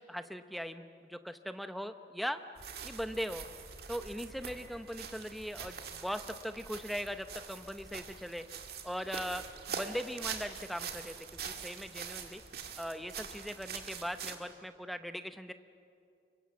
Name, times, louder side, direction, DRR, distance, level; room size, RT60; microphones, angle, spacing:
voice 1, 0.0-2.4 2.8-3.5 3.9-8.5 8.8-9.4 9.7-11.2 11.4-12.4 12.8-15.5, equal, ahead, 9 dB, 0.7 m, -39 dB
sound 1, 2.6-14.4, right 6 dB, 55° right, 2.0 m, -44 dB
27.5 x 24.0 x 7.3 m, 2.4 s
head